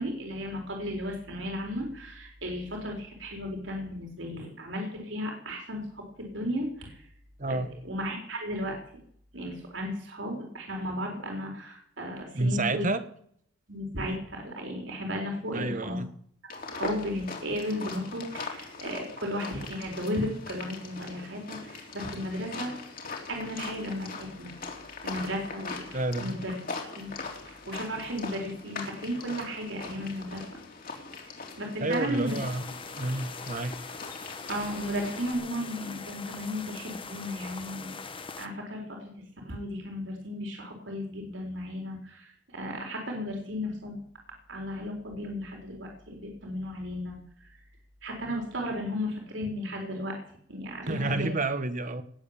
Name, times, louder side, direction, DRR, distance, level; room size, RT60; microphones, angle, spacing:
voice 1, 0.0-7.0 7.5-7.6 7.8-8.8 9.3-12.9 13.7-16.0 16.5-22.7 23.3-24.5 25.0-26.6 26.8-27.1 27.5-30.4 31.2-32.4 34.5-37.9 38.3-39.1 39.4-44.0 44.5-47.2 48.0-50.2 50.5-51.3, equal, 70° right, 1 dB, 4.4 m, -34 dB
voice 2, 7.4-7.8 12.3-13.0 15.5-16.1 25.9-26.4 31.8-32.6 33.0-33.8 50.9-52.0, right 2 dB, 40° right, 11 dB, 1.4 m, -29 dB
sound 1, 16.5-35.3, left 4 dB, 50° left, 3.5 m, -41 dB
sound 2, 32.3-38.5, left 4 dB, 30° left, 1.2 m, -42 dB
19.5 x 7.7 x 9.0 m, 0.66 s
head